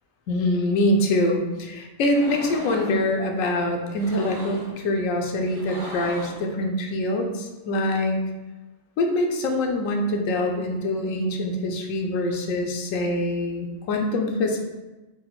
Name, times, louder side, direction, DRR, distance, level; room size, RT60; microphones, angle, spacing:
voice 1, 0.3-8.2 9.0-14.6, left 1 dB, 90° left, 2 dB, 1.0 m, -24 dB
sound 1, 2.1-3.0 3.9-4.8 5.4-6.5, right 1 dB, 75° right, 1.3 m, -38 dB
3.8 x 2.2 x 4.0 m, 1.1 s
omnidirectional pair, 1.3 m